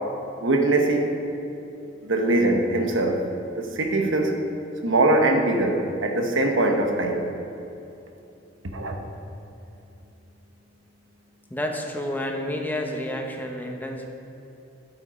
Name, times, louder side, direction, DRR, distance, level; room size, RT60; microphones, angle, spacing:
voice 1, 0.4-1.1 2.0-3.3 3.6-4.4 4.8-7.3 8.7-9.0, right 2 dB, 85° right, 4 dB, 1.1 m, -22 dB
voice 2, 11.5-14.1, left 1 dB, 10° left, 2 dB, 0.9 m, -30 dB
9.0 x 8.4 x 5.0 m, 2.9 s
head